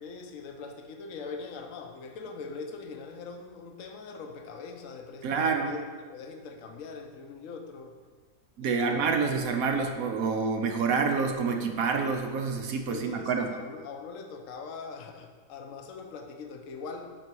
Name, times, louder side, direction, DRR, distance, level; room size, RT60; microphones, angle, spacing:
voice 1, 0.0-5.8 6.1-8.0 8.6-9.1 12.9-17.1, left 4 dB, 60° left, 4 dB, 1.1 m, -42 dB
voice 2, 5.2-5.7 8.6-13.5, right 5 dB, 70° right, 4 dB, 1.1 m, -27 dB
10.5 x 4.0 x 4.7 m, 1.5 s
omnidirectional pair, 1.6 m